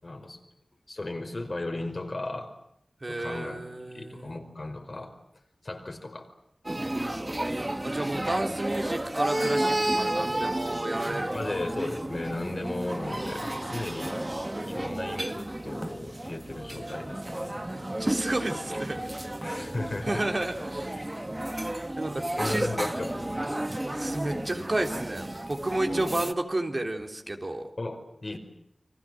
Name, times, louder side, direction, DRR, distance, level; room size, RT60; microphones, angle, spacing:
voice 1, 0.0-0.4 0.9-2.5 3.1-3.6 3.9-5.2 5.6-6.3 11.3-14.3 14.6-17.6 19.4-20.2 21.0-21.3 22.3-23.6 27.8-28.4, left 2 dB, 50° left, 4 dB, 5.2 m, -36 dB
voice 2, 3.0-4.4 7.8-11.3 17.5-19.1 19.4-19.7 20.0-20.9 22.0-22.7 23.9-27.7, right 2 dB, 40° right, 3 dB, 3.4 m, -32 dB
sound 1, 6.6-26.3, right 1 dB, 20° right, 1.3 m, -32 dB
29.5 x 24.5 x 7.7 m, 0.73 s
wide cardioid pair, 70°, 0 cm